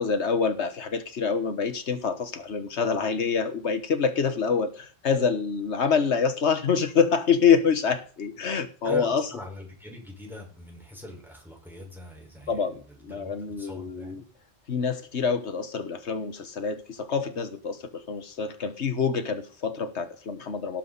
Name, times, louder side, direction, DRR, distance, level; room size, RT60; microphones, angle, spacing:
voice 1, 0.0-9.3 12.5-14.2 14.7-20.8, left 6 dB, 85° left, 9 dB, 1.6 m, -26 dB
voice 2, 8.8-12.6 12.9-14.2, left 1 dB, ahead, -1 dB, 4.8 m, -41 dB
18.5 x 7.4 x 4.1 m, 0.39 s
omnidirectional pair, 1.1 m